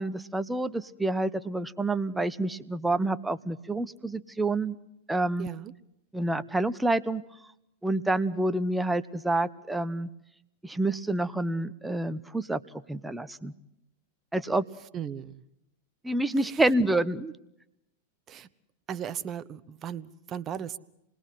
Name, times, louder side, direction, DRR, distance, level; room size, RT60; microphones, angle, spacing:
voice 1, 0.0-4.8 5.1-5.5 6.1-7.2 7.8-10.1 10.6-12.6 12.9-13.5 14.3-14.7 16.0-17.3, right 2 dB, 5° right, 14 dB, 1.1 m, -28 dB
voice 2, 5.4-5.7 14.9-15.4 16.4-16.6 18.3-18.5 18.9-20.8, right 9 dB, 30° right, 14 dB, 1.2 m, -37 dB
27.5 x 20.5 x 7.7 m, 0.84 s
hypercardioid pair, 105°, 0 cm